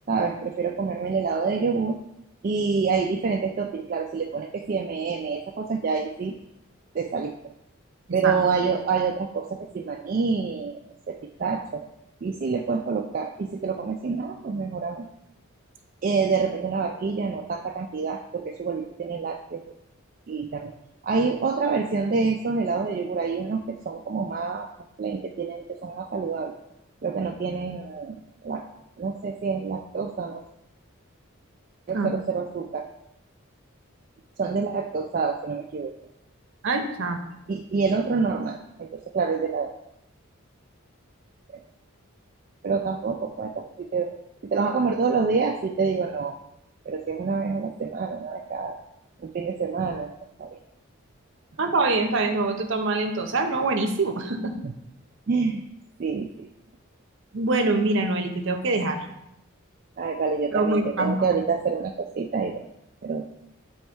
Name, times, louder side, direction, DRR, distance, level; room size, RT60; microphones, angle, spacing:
voice 1, 0.1-2.0 2.4-6.3 6.9-7.3 8.1-10.8 11.1-11.8 12.2-15.1 16.0-19.6 20.3-20.7 21.0-24.7 25.0-26.5 27.0-28.2 28.4-28.7 29.0-30.4 31.9-32.9 34.4-35.9 37.5-39.7 41.5-41.6 42.6-44.2 44.4-46.4 46.9-48.8 49.2-50.1 50.4-50.6 54.6-54.7 55.3-55.6 56.0-56.5 60.0-62.6 63.0-63.3, right 5 dB, 40° right, 2 dB, 0.3 m, -27 dB
voice 2, 36.6-37.2 51.6-54.5 57.3-59.0 60.5-61.4, right 2 dB, 60° right, 5 dB, 0.7 m, -24 dB
7.8 x 3.1 x 4.4 m, 0.83 s
head